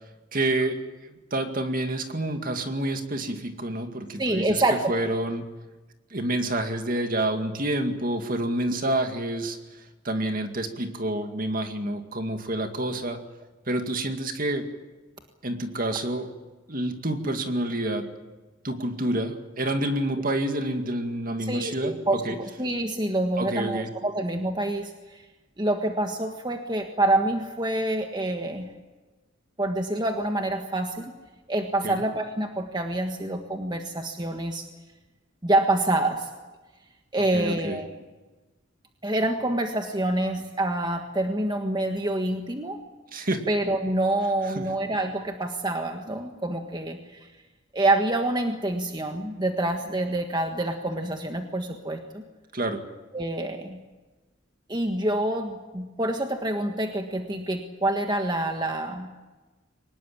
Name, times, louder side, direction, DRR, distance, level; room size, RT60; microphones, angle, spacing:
voice 1, 0.3-5.5 6.1-13.2 13.7-14.7 15.4-16.3 16.7-18.1 18.6-22.4 23.4-23.9 31.8-32.0 37.3-37.8 43.1-43.4 44.4-44.7 52.5-52.8, right 1 dB, 45° right, 6 dB, 2.3 m, -28 dB
voice 2, 4.2-4.9 21.5-22.2 22.6-25.2 25.6-28.7 29.6-31.0 31.5-34.7 35.4-36.3 37.1-37.9 39.0-42.8 43.5-47.3 47.7-52.2 53.1-53.8 54.7-59.1, right 1 dB, 20° right, 4 dB, 1.5 m, -27 dB
24.0 x 20.0 x 8.8 m, 1.2 s
head